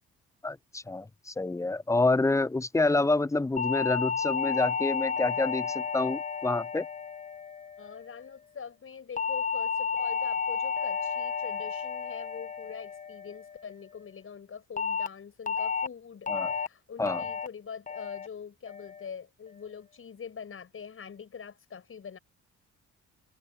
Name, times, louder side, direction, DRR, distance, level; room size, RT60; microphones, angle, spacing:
voice 1, 0.4-6.9 16.3-16.5 17.0-17.2, left 2 dB, 10° left, 0.5 m, -28 dB
sound 1, 3.6-8.0 9.2-13.6 14.8-15.1 15.5-15.9 16.3-16.7 17.1-17.5 17.9-18.3 18.7-19.1, left 6 dB, 25° left, 1.3 m, -32 dB
voice 2, 7.8-22.2, left 6 dB, 45° left, 7.2 m, -44 dB
cardioid pair, 90°, 30 cm